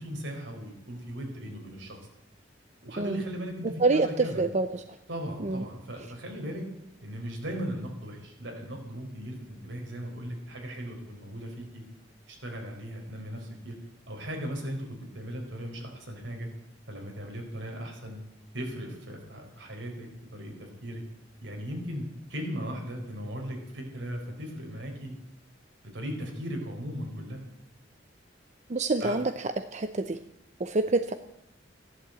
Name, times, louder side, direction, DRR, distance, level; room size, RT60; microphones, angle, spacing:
voice 1, 0.0-2.0 2.8-4.4 5.1-6.6 7.0-11.8 12.3-13.7 14.1-16.5 16.9-18.2 18.5-21.0 21.4-25.1 25.9-27.4 29.0-29.2, equal, 75° right, 1 dB, 4.4 m, -37 dB
voice 2, 3.8-4.7 5.4-5.6 28.7-29.2 29.7-30.2 30.6-31.1, right 3 dB, 40° right, 9 dB, 0.6 m, -26 dB
15.0 x 11.5 x 7.9 m, 0.84 s
head